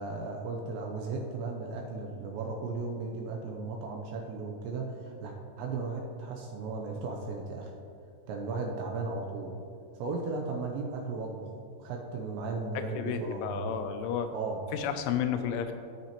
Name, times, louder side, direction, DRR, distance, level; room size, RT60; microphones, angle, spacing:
voice 1, 0.0-7.7 8.3-9.5 10.0-11.5 11.8-13.8 14.3-14.6, right 3 dB, 85° right, 1 dB, 2.7 m, -36 dB
voice 2, 12.8-14.3 14.7-15.7, left 8 dB, 85° left, 8 dB, 3.0 m, -32 dB
15.5 x 6.0 x 2.9 m, 2.5 s
omnidirectional pair, 5.5 m